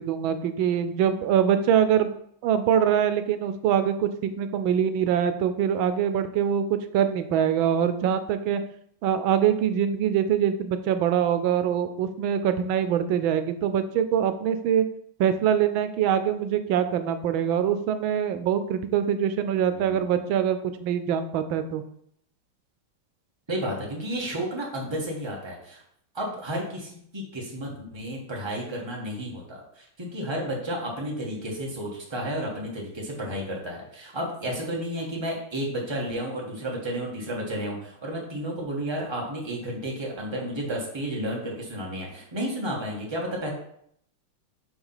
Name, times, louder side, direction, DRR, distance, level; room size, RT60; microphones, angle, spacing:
voice 1, 0.0-2.1 2.4-8.6 9.0-14.9 15.2-21.8, right 9 dB, 90° right, 10 dB, 1.4 m, -24 dB
voice 2, 19.7-20.2 23.5-25.8 26.1-43.5, equal, 15° right, -2 dB, 1.3 m, -32 dB
5.8 x 4.0 x 5.6 m, 0.70 s
omnidirectional pair, 2.1 m